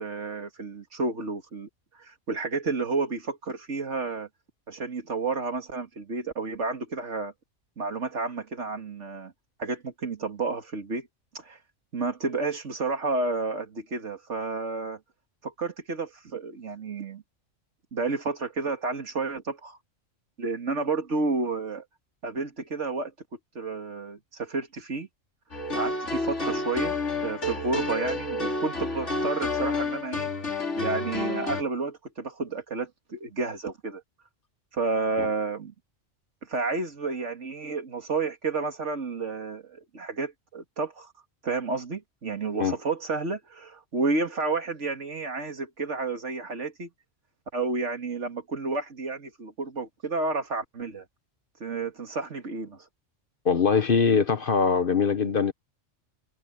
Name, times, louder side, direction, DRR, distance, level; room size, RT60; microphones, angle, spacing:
voice 1, 0.0-1.7 2.0-4.3 4.7-7.3 7.8-9.3 9.6-11.1 11.3-11.6 11.9-15.0 15.4-17.2 17.9-19.8 20.4-21.8 22.2-23.1 23.5-25.1 25.7-30.3 30.8-34.0 34.7-35.7 36.5-41.1 41.4-46.9 47.5-51.0 51.6-52.8, right 3 dB, 65° right, 2.5 m, -31 dB
sound 1, 25.5-31.6, left 2 dB, 65° left, 3.4 m, -29 dB
voice 2, 53.4-55.5, left 5 dB, 45° left, 1.1 m, -22 dB
omnidirectional pair, 1.3 m